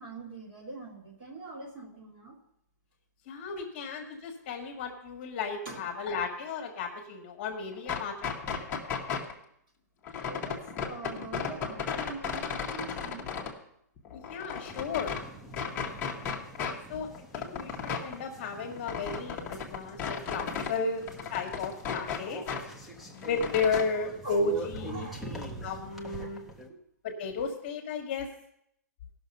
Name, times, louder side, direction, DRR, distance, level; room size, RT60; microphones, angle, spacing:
voice 1, 0.0-2.4 5.7-5.9 10.2-13.3 15.8-16.0 21.9-22.0 22.6-22.8 24.2-24.4 24.8-25.3 26.1-26.3 26.7-26.8, right 3 dB, 35° right, 0 dB, 2.0 m, -43 dB
voice 2, 3.3-8.3 14.1-15.1 16.9-21.0 21.3-22.4 23.1-25.1 25.6-26.4 27.0-28.3, left 4 dB, 35° left, 3 dB, 1.4 m, -33 dB
sound 1, 7.7-9.3 10.1-13.5 14.0-15.2 15.5-16.8 17.0-20.8 21.0-22.6 22.9-23.8, left 6 dB, 20° left, 1.0 m, -35 dB
sound 2, 14.7-26.7, right 1 dB, ahead, 0.7 m, -45 dB
16.0 x 6.2 x 5.3 m, 0.73 s
hypercardioid pair, 165°, 10 cm